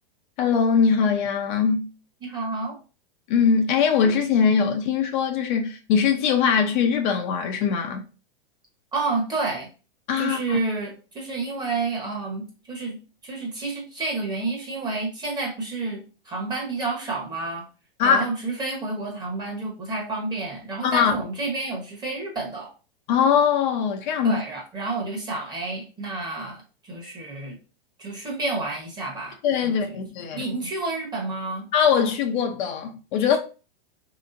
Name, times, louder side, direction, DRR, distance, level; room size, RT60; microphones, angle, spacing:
voice 1, 0.4-1.9 3.3-8.1 10.1-10.6 18.0-18.3 20.8-21.1 23.1-24.4 29.4-30.5 31.7-33.4, left 6 dB, 55° left, 0.6 m, -21 dB
voice 2, 2.2-2.8 8.9-9.7 10.2-13.0 13.2-17.6 18.0-22.7 24.2-27.6 28.0-29.4 29.6-30.0 30.3-31.7, right 3 dB, 15° right, 1.0 m, -30 dB
3.2 x 2.9 x 2.5 m
hypercardioid pair, 140°, 29 cm